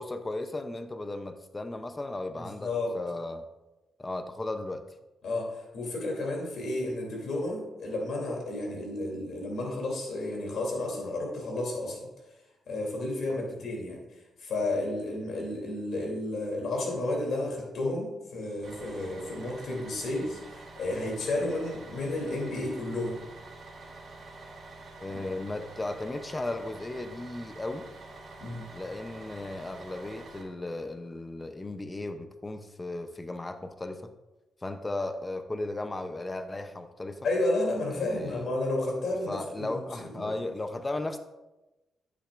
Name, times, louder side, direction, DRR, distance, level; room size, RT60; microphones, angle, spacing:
voice 1, 0.0-3.4 4.0-4.9 13.3-13.5 25.0-27.9 28.7-34.1 34.6-37.3 37.9-38.5 39.3-41.2, left 2 dB, 20° left, 8 dB, 0.6 m, -36 dB
voice 2, 2.4-2.9 5.2-12.1 12.7-14.0 14.4-23.2 28.4-28.7 37.2-40.3, left 2 dB, 70° left, -1 dB, 2.9 m, -32 dB
Bus, 18.6-30.4, right 2 dB, 55° right, 1.8 m, -47 dB
10.5 x 8.3 x 2.5 m, 1.0 s
cardioid pair, 130°, 0 cm